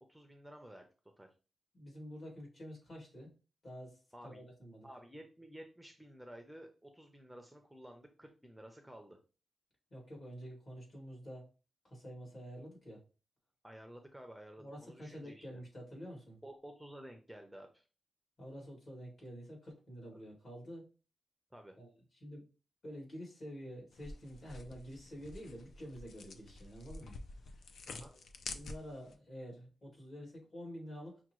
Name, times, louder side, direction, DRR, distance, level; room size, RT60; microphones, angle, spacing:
voice 1, 0.1-0.9 1.2-1.3 4.1-4.4 4.8-9.2 13.6-15.6 16.4-17.8 21.5-21.8 27.9-28.1, right 1 dB, 5° right, 4 dB, 0.5 m, -52 dB
voice 2, 1.7-3.3 3.6-4.9 9.9-11.5 11.8-13.0 14.6-16.4 18.4-20.9 21.8-21.9 22.2-22.5 22.8-27.6 27.8-31.2, equal, 50° left, -2 dB, 2.4 m, -48 dB
sound 1, 23.9-29.1, left 3 dB, 75° left, 0.4 m, -49 dB
5.7 x 2.2 x 3.0 m, 0.33 s
wide cardioid pair, 125°, 0 cm